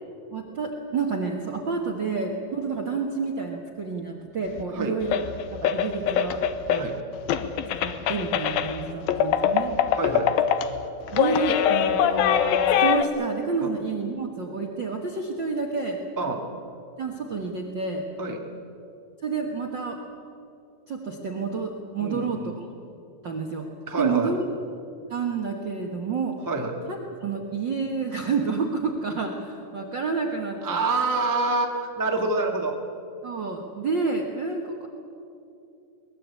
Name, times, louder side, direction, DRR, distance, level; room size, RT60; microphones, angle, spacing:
voice 1, 0.3-5.2 5.5-6.4 6.7-6.9 7.8-9.7 11.1-16.0 17.0-18.0 19.2-20.0 20.9-22.6 23.2-23.7 24.0-24.4 25.1-26.4 26.9-30.8 33.2-34.9, right 4 dB, 55° right, 1 dB, 1.2 m, -29 dB
sound 1, 4.6-4.7 5.0-6.9 7.3-13.0, left 9 dB, 80° left, 2.7 m, -23 dB
voice 2, 9.9-10.3 16.2-16.4 18.2-18.4 22.0-22.5 23.9-24.3 26.5-26.8 30.6-32.7, right 3 dB, 15° right, 2 dB, 0.7 m, -26 dB
22.5 x 20.0 x 8.4 m, 2.6 s
omnidirectional pair, 4.3 m